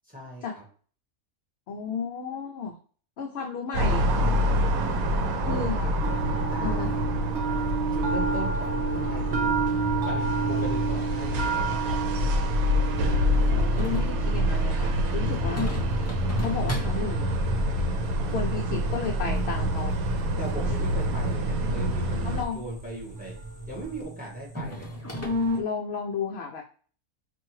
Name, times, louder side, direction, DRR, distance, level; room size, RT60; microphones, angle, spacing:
voice 1, 0.1-0.6 4.9-5.2 5.5-6.0 6.5-7.1 7.9-12.4 15.1-15.6 18.2-18.6 20.4-23.4 23.7-24.9, right 1 dB, 5° right, -2 dB, 1.3 m, -39 dB
voice 2, 1.7-2.8 3.2-4.1 5.4-5.8 6.6-6.9 13.5-15.7 16.4-17.4 18.3-20.0 22.2-22.6 25.6-26.6, left 6 dB, 65° left, 2 dB, 0.6 m, -33 dB
sound 1, 3.7-22.4, equal, 85° right, 1.1 m, -26 dB
sound 2, 6.0-24.0, right 4 dB, 60° right, 1.0 m, -32 dB
sound 3, 13.3-25.6, left 1 dB, 20° left, 0.4 m, -36 dB
4.4 x 2.7 x 3.1 m, 0.43 s
omnidirectional pair, 1.5 m